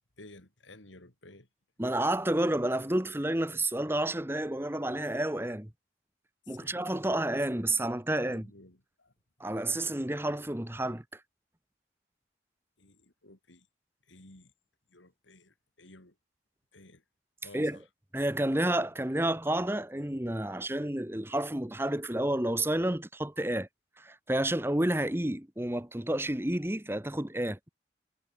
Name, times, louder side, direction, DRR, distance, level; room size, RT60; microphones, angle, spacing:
voice 1, 0.2-1.5 6.5-6.8 8.3-9.1 9.8-9.9 12.8-13.7 14.1-14.5 14.9-16.1 16.7-17.0 17.4-17.8, left 2 dB, 90° left, 4.5 m, -54 dB
voice 2, 1.8-5.7 6.5-8.5 9.4-11.0 17.5-17.8 18.1-23.7 24.0-27.7, right 1 dB, 10° right, 1.1 m, -30 dB
head